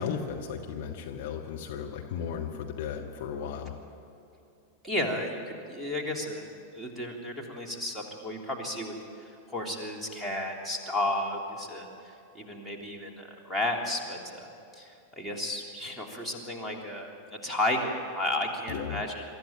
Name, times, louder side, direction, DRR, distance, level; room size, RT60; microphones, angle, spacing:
voice 1, 0.0-3.8 18.7-19.0, left 7 dB, 50° left, 1 dB, 1.7 m, -35 dB
voice 2, 4.8-6.4 6.7-8.9 9.5-11.9 12.3-14.5 14.8-19.2, left 1 dB, ahead, -2 dB, 3.2 m, -33 dB
24.0 x 13.5 x 9.2 m, 2.7 s
figure-of-eight pair, 90°, 0 cm